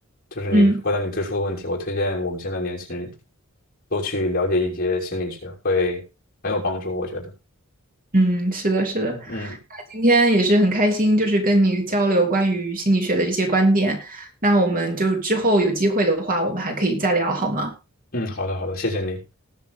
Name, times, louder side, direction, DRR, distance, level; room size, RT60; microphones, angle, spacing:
voice 1, 0.3-3.1 3.9-6.0 6.4-7.3 9.1-9.6 18.1-19.2, left 2 dB, 45° left, 5.8 m, -26 dB
voice 2, 8.1-17.7, right 1 dB, 40° right, 3.1 m, -20 dB
20.0 x 7.2 x 3.8 m
head